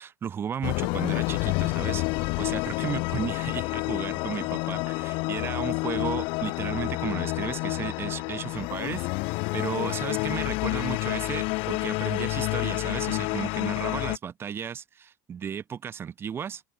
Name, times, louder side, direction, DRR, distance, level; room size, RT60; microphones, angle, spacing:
voice 1, 0.0-16.6, right 8 dB, 25° right, 0.8 m, -34 dB
sound 1, 0.6-14.2, left 27 dB, 70° left, 0.7 m, -29 dB
open air
cardioid pair, 155°, 9 cm